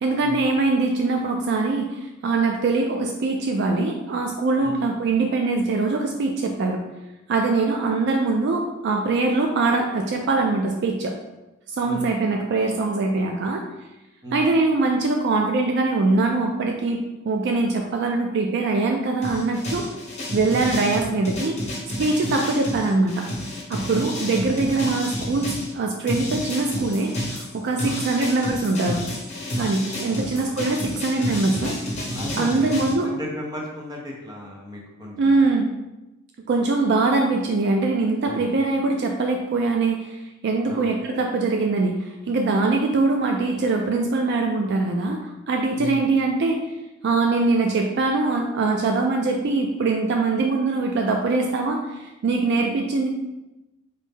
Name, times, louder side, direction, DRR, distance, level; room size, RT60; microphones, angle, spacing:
voice 1, 0.0-6.8 7.3-11.2 11.7-13.6 14.3-17.0 17.2-19.9 20.3-21.6 22.0-23.3 23.7-29.0 29.6-31.8 32.4-33.1 35.2-35.7 36.5-46.6 47.0-53.1, right 3 dB, 55° right, 2 dB, 0.3 m, -22 dB
voice 2, 11.8-12.2 14.2-14.5 22.2-22.4 23.9-24.3 27.8-28.1 30.1-30.6 32.1-32.7 33.0-35.5 38.2-38.5 40.7-40.9 45.7-46.0, equal, 20° right, -2 dB, 0.8 m, -35 dB
sound 1, 19.2-25.7 26.1-32.9, left 1 dB, 30° left, 0.9 m, -30 dB
3.9 x 2.6 x 3.6 m, 1.0 s
head